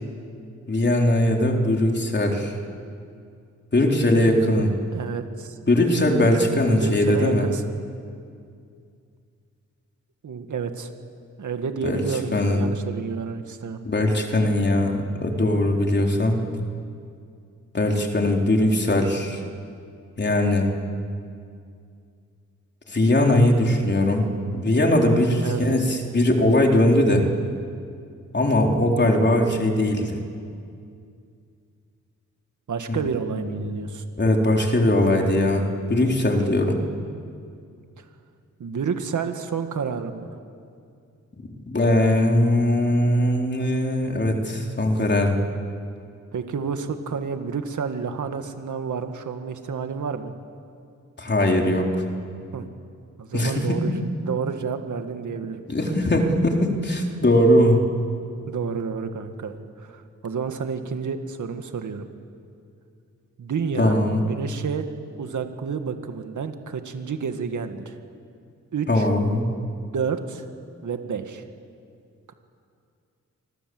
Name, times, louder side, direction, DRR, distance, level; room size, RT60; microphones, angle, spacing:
voice 1, 0.7-2.5 3.7-4.7 5.7-7.5 11.8-12.0 12.3-12.7 13.8-16.4 17.7-19.4 20.2-20.7 22.9-24.3 24.5-27.3 28.3-30.2 32.9-33.0 33.3-33.6 34.2-36.8 41.7-45.4 51.2-52.0 53.3-53.9 55.7-57.8 63.8-64.2 68.9-69.5, left 1 dB, 35° left, 1 dB, 3.9 m, -20 dB
voice 2, 4.9-5.6 6.7-7.7 10.2-10.9 11.4-13.8 25.4-25.8 32.7-34.0 38.0-38.1 38.6-40.4 46.3-50.3 52.5-52.7 53.2-56.0 58.5-62.1 63.4-64.0 64.3-64.9 65.2-68.0 68.7-69.1 69.9-70.5 70.8-71.4 72.3-72.4, right 6 dB, 75° right, 7 dB, 2.1 m, -30 dB
30.0 x 25.0 x 8.0 m, 2.4 s
wide cardioid pair, 100°, 30 cm